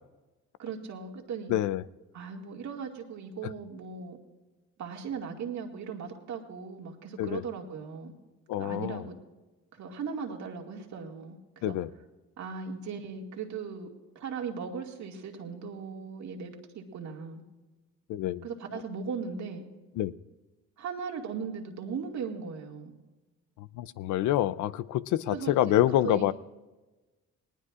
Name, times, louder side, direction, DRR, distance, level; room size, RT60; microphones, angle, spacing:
voice 1, 0.6-1.5 2.1-4.2 4.8-8.1 8.6-9.2 9.7-11.8 12.4-13.9 14.2-17.4 18.4-19.6 20.8-22.9 25.3-26.3, right 6 dB, 70° right, 1 dB, 2.1 m, -38 dB
voice 2, 1.5-1.8 7.2-7.4 8.5-9.0 11.6-11.9 18.1-18.5 20.0-20.1 23.6-26.3, left 13 dB, 80° left, 17 dB, 0.5 m, -27 dB
19.5 x 19.0 x 2.4 m, 1.2 s
cardioid pair, 80°, 30 cm